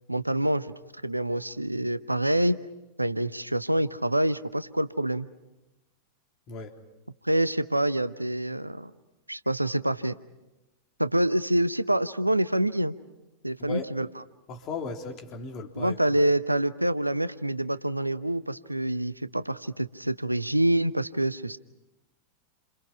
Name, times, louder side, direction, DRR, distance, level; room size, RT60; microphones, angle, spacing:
voice 1, 0.1-0.7 1.0-2.6 3.0-5.3 7.2-8.9 9.3-10.1 11.0-12.9 13.4-14.2 15.8-21.6, right 1 dB, 85° right, 14 dB, 0.8 m, -26 dB
voice 2, 14.5-16.0, left 4 dB, 35° left, 3 dB, 3.5 m, -36 dB
29.5 x 27.5 x 5.7 m, 0.99 s
figure-of-eight pair, 90°, 0 cm